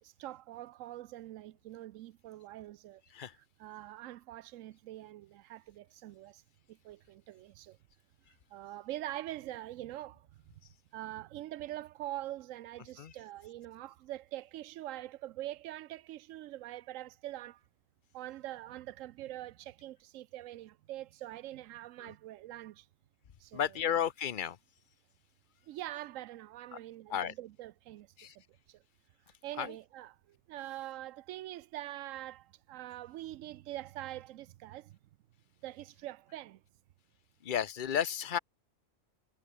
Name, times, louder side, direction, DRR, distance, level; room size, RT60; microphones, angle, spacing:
voice 1, 0.0-3.0 3.4-6.4 6.7-7.8 8.5-10.5 10.9-17.6 18.1-22.9 23.4-23.8 25.7-28.3 28.7-28.8 29.4-35.0 35.6-36.6, right 14 dB, 80° right, 1.0 m, -44 dB
voice 2, 23.5-24.6 26.7-26.8 27.1-27.3 28.2-28.3 29.6-29.7 37.4-38.4, left 9 dB, 45° left, 0.8 m, -33 dB
omnidirectional pair, 1.3 m